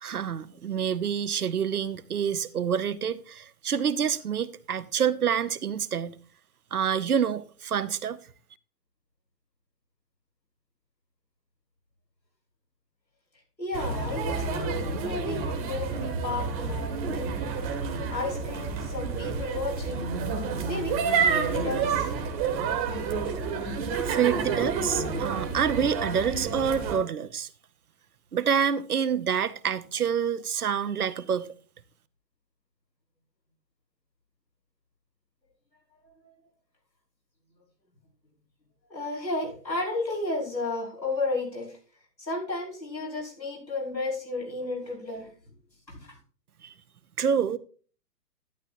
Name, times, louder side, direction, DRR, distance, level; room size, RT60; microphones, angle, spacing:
voice 1, 0.0-6.2 6.7-8.2 24.0-27.5 28.3-31.5 46.6-46.7 47.2-47.6, right 7 dB, 60° right, 0.8 m, -27 dB
voice 2, 13.6-17.6 18.1-20.1 20.6-21.0 21.3-22.1 38.9-41.8 42.2-45.3 45.9-46.2, left 2 dB, 90° left, 5.7 m, -33 dB
sound 1, 13.7-27.0, right 5 dB, 20° right, 1.3 m, -29 dB
11.5 x 10.5 x 2.6 m
figure-of-eight pair, 125°, 50 cm